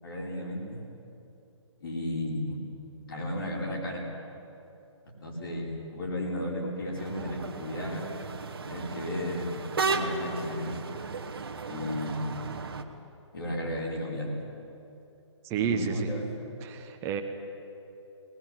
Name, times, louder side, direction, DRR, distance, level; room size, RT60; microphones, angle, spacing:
voice 1, 0.0-0.8 1.8-2.6 3.1-4.1 5.2-8.1 8.6-10.8 11.7-12.5 13.3-14.3 15.6-16.3, left 1 dB, 50° left, -3 dB, 5.7 m, -34 dB
sound 1, 6.9-12.8, right 4 dB, 50° right, 1.5 m, -35 dB
voice 2, 15.4-16.1 16.6-17.2, right 7 dB, 15° right, 5 dB, 1.4 m, -30 dB
23.0 x 20.0 x 8.1 m, 2.8 s
figure-of-eight pair, 135°, 16 cm